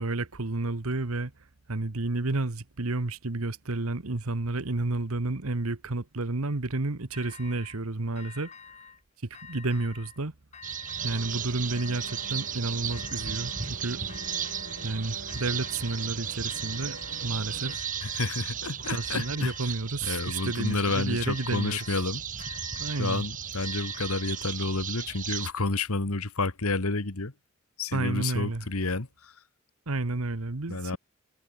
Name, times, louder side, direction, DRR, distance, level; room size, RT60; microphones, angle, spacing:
voice 1, 0.0-1.3 1.7-8.5 9.4-10.3 11.0-14.0 14.8-17.9 18.9-21.8 22.8-23.2 27.9-28.6 29.9-31.0, right 2 dB, 75° right, 1.3 m, -31 dB
sound 1, 7.1-7.8 8.2-9.0 9.3-10.2 10.5-11.4 11.7-12.6 12.9-13.8 14.1-14.9 15.3-16.1 16.5-17.3 17.6-18.5 18.8-19.7 20.0-20.9 21.2-22.1 22.4-24.4, left 6 dB, 30° left, 2.4 m, -47 dB
sound 2, 10.6-25.5, right 9 dB, 35° right, 1.7 m, -35 dB
sound 3, 11.0-17.8, right 2 dB, 55° right, 4.8 m, -45 dB
voice 2, 18.0-19.5 20.0-22.6 23.0-27.3 27.8-29.4 30.7-31.0, left 3 dB, 80° left, 1.7 m, -30 dB
head